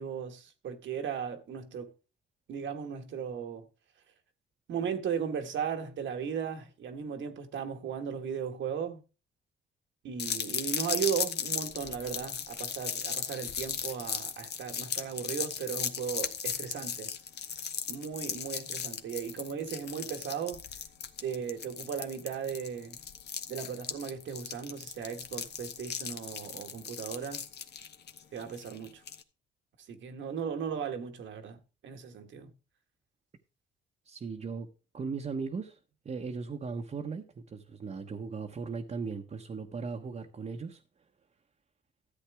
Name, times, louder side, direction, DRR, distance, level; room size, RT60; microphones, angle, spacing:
voice 1, 0.0-1.9 2.5-3.6 4.7-9.0 10.0-17.1 17.9-20.6 21.2-23.0 23.5-27.4 28.3-29.0 29.9-31.6 31.8-32.5, right 7 dB, 70° right, 1.6 m, -36 dB
sound 1, 10.2-29.2, left 7 dB, 55° left, 1.1 m, -37 dB
voice 2, 34.0-34.7 34.9-35.8 36.0-40.8, right 5 dB, 35° right, 1.1 m, -37 dB
13.5 x 8.1 x 3.5 m
cardioid pair, 90°, 20 cm